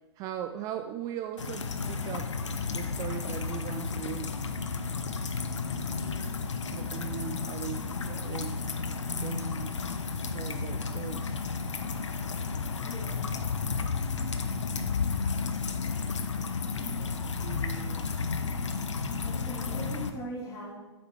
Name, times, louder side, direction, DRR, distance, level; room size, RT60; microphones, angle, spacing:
voice 1, 0.2-2.4 2.7-4.4 6.7-8.9 9.2-9.8 10.3-11.4 14.5-14.9 17.4-18.3, right 11 dB, 25° right, 8 dB, 0.3 m, -39 dB
sound 1, 1.4-20.1, left 4 dB, 80° left, 0.9 m, -32 dB
voice 2, 12.8-13.3 15.9-16.0 19.2-20.7, left 1 dB, 25° left, -3 dB, 2.6 m, -40 dB
8.5 x 8.3 x 3.5 m, 1.2 s
hypercardioid pair, 125°, 15 cm